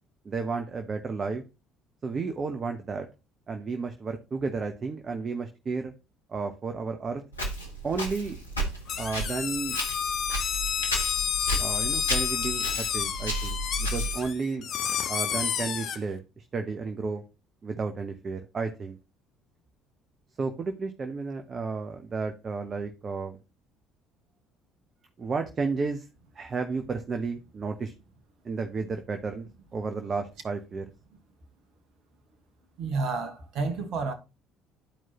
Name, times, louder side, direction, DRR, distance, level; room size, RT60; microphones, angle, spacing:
voice 1, 0.2-1.4 2.0-3.1 3.5-5.9 6.3-7.2 7.8-8.4 9.0-9.8 11.6-14.7 15.1-17.2 17.6-19.0 20.4-23.4 25.2-26.0 26.4-27.9 28.4-30.8, right 4 dB, 35° right, 0.9 m, -32 dB
Walk footsteps, 7.3-14.3, equal, 85° left, 1.3 m, -33 dB
sound 1, 8.9-16.0, left 8 dB, 50° left, 0.8 m, -30 dB
voice 2, 32.8-34.1, right 4 dB, 55° right, 1.4 m, -30 dB
12.0 x 4.6 x 2.9 m
figure-of-eight pair, 55°, 0 cm